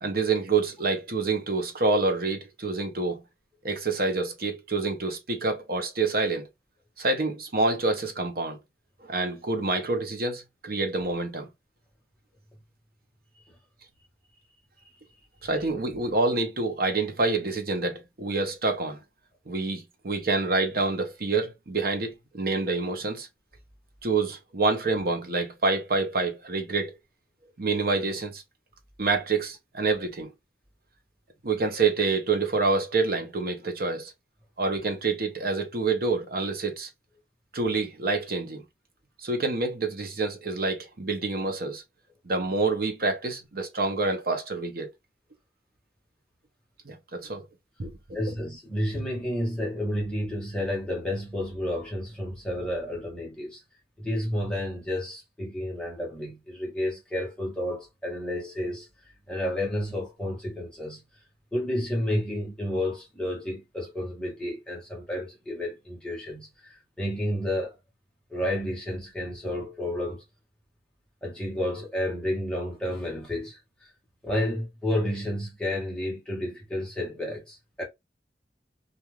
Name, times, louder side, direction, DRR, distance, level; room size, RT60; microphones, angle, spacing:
voice 1, 0.0-3.2 3.6-6.5 7.0-8.6 9.0-11.5 15.4-19.0 19.5-23.3 24.0-26.9 27.6-28.4 29.0-30.3 31.4-34.1 34.6-36.9 37.5-38.6 39.2-41.8 42.2-44.9 46.8-47.5 47.8-47.9 48.3-48.4, right 3 dB, 55° right, 0.7 m, -27 dB
voice 2, 48.1-53.6 54.0-58.9 59.3-61.0 61.5-67.7 68.3-70.2 71.2-73.6 74.2-77.8, left 1 dB, 5° left, 1.0 m, -31 dB
2.4 x 2.4 x 3.0 m
head